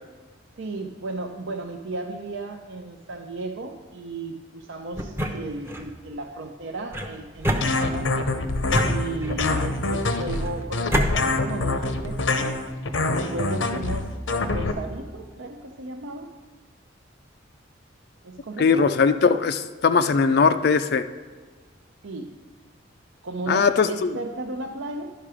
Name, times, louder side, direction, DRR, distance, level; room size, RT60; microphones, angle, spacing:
voice 1, 0.6-8.1 8.7-12.6 13.1-16.3 18.2-19.0 22.0-22.3 23.2-25.1, right 3 dB, 70° right, 3 dB, 0.6 m, -34 dB
sound 1, 4.9-5.9 6.9-8.2 8.7-9.6 10.3-11.1, equal, 10° right, 0.6 m, -28 dB
sound 2, 7.6-14.7, left 3 dB, 75° left, 0.7 m, -25 dB
voice 2, 18.6-21.0 23.5-24.1, left 5 dB, 55° left, 9 dB, 0.3 m, -20 dB
11.0 x 5.7 x 4.9 m, 1.5 s
head